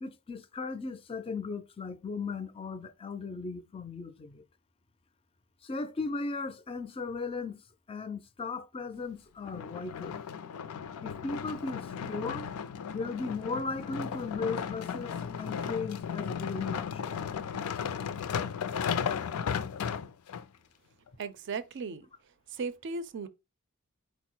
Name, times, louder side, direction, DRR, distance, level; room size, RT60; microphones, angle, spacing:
voice 1, 0.0-4.4 5.6-7.6 7.9-10.2 11.0-12.5 12.9-17.2, left 4 dB, 25° left, 0.4 m, -37 dB
sound 1, 9.4-20.4 21.1-21.2, left 7 dB, 90° left, 0.4 m, -35 dB
voice 2, 21.2-22.1 22.5-23.3, right 4 dB, 55° right, 0.4 m, -36 dB
4.5 x 2.0 x 4.3 m
head